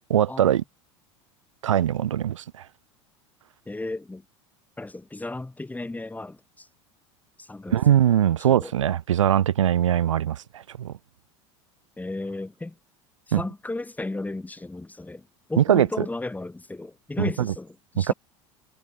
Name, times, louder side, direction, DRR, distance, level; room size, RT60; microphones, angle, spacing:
voice 1, 0.1-0.6 1.6-2.6 7.7-10.9 13.3-13.4 15.6-16.1 17.2-17.5 18.0-18.1, right 10 dB, 85° right, 0.6 m, -21 dB
voice 2, 3.7-4.2 4.8-6.7 7.4-7.8 8.5-8.7 12.0-12.7 13.3-18.1, left 2 dB, 10° left, 6.4 m, -34 dB
hypercardioid pair, 80°, 16 cm